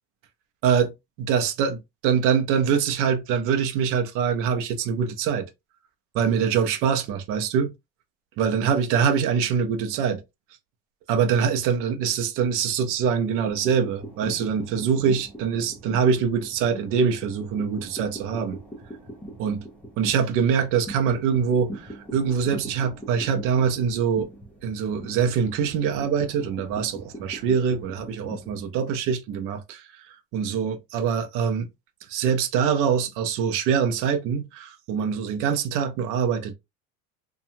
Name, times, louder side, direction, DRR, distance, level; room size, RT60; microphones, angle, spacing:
voice 1, 1.2-5.5 6.1-7.7 8.4-10.2 11.1-18.6 19.4-19.6 20.0-24.3 24.6-29.9 30.3-31.7 32.1-36.5, right 7 dB, 50° right, 0.6 m, -24 dB
sound 1, 13.5-28.7, right 1 dB, 5° left, 0.5 m, -41 dB
2.8 x 2.3 x 2.6 m
cardioid pair, 165°, 29 cm